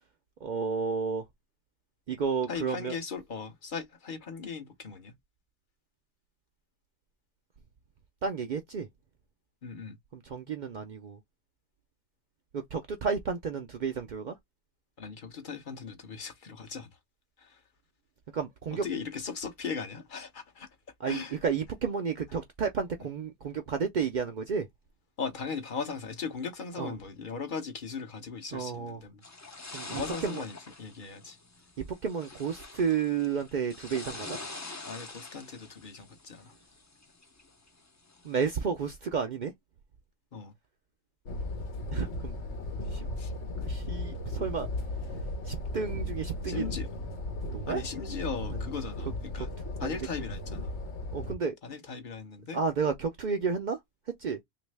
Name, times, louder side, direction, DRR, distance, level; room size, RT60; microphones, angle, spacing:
voice 1, 0.4-1.2 2.1-2.9 8.2-8.9 10.1-11.2 12.5-14.3 18.3-18.8 21.0-24.7 26.8-26.9 28.5-29.0 29.7-30.4 31.8-34.4 38.2-39.5 41.9-42.4 42.9-43.1 43.7-44.7 45.5-46.7 47.5-47.8 49.4-49.5 49.8-50.0 51.1-51.6 52.5-53.8 54.2-54.4, right 6 dB, 55° right, 0.5 m, -31 dB
voice 2, 2.5-5.1 9.6-10.0 15.0-16.9 17.4-17.6 18.7-20.7 21.0-21.4 25.2-29.2 29.9-31.4 34.8-36.5 40.3-40.5 43.2-43.3 46.5-46.9 47.7-49.5 49.8-50.7 51.6-52.6, left 5 dB, 50° left, 0.8 m, -38 dB
sound 1, 29.2-38.3, left 3 dB, 25° left, 0.4 m, -45 dB
sound 2, 41.3-51.3, left 1 dB, 80° left, 1.0 m, -36 dB
3.0 x 2.5 x 3.2 m
omnidirectional pair, 1.2 m